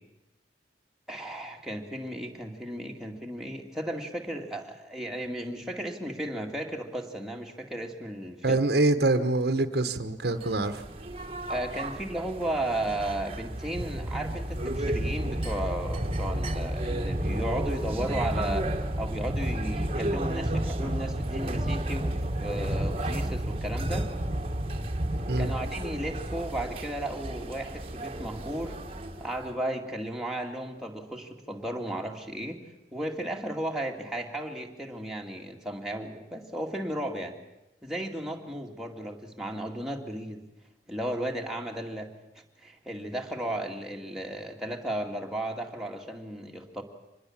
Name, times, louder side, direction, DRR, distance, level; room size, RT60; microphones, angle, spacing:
voice 1, 1.1-8.6 11.5-18.7 19.0-24.1 25.4-28.8 29.2-32.6 32.9-37.4 37.8-40.4 40.9-42.1 42.6-46.8, right 1 dB, 5° right, 0 dB, 2.3 m, -34 dB
voice 2, 8.4-10.8 25.3-25.5, right 2 dB, 60° right, 9 dB, 1.3 m, -25 dB
sound 1, 10.3-29.5, right 1 dB, 30° right, 1.5 m, -32 dB
25.5 x 20.5 x 7.4 m, 0.96 s
head